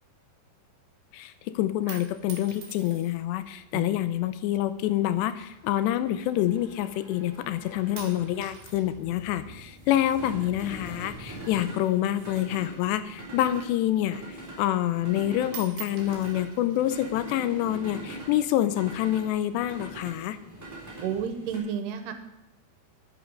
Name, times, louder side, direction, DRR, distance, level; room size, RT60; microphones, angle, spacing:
voice 1, 1.1-20.4, left 13 dB, 90° left, 12 dB, 2.9 m, -27 dB
sound 1, 1.6-3.4 4.2-4.6 5.5-6.8 7.2-7.6 8.0-12.0 12.3-14.0 14.4-14.5 14.8-15.2 15.4-17.3 18.0-18.7, right 7 dB, 60° right, 3.1 m, -47 dB
sound 2, 2.2-21.6, right 2 dB, 5° right, 3.0 m, -44 dB
voice 2, 21.0-22.1, right 7 dB, 80° right, 8 dB, 2.9 m, -31 dB
10.5 x 9.1 x 6.4 m, 0.90 s
omnidirectional pair, 4.8 m